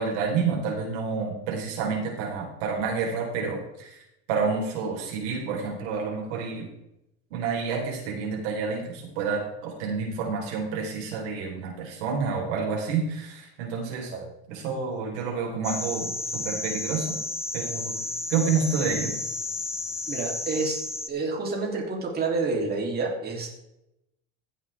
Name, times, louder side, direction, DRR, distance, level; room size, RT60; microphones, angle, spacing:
voice 1, 0.0-4.0 4.3-6.7 7.3-14.1 14.5-17.1 17.5-18.0 18.3-19.1, right 5 dB, 90° right, 0 dB, 4.4 m, -29 dB
sound 1, 15.6-21.1, left 2 dB, 10° left, 1.0 m, -32 dB
voice 2, 20.1-20.8 21.1-23.5, right 3 dB, 25° right, -1 dB, 3.4 m, -28 dB
16.0 x 8.3 x 3.6 m, 0.85 s
cardioid pair, 130°, 35 cm